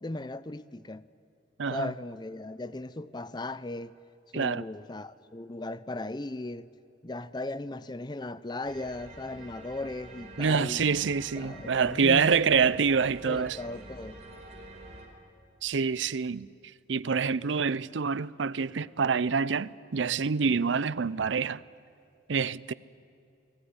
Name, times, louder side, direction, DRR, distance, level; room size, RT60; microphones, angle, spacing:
voice 1, 0.0-1.1 1.7-4.0 4.3-6.7 7.0-10.9 11.4-12.8 13.3-14.2, left 2 dB, 25° left, 0.6 m, -37 dB
voice 2, 1.6-1.9 4.3-4.6 10.4-13.6 15.6-16.5 16.9-21.6 22.3-22.7, right 5 dB, 85° right, 0.6 m, -26 dB
sound 1, 8.6-15.1, right 1 dB, 35° right, 4.1 m, -47 dB
29.0 x 20.0 x 9.8 m
head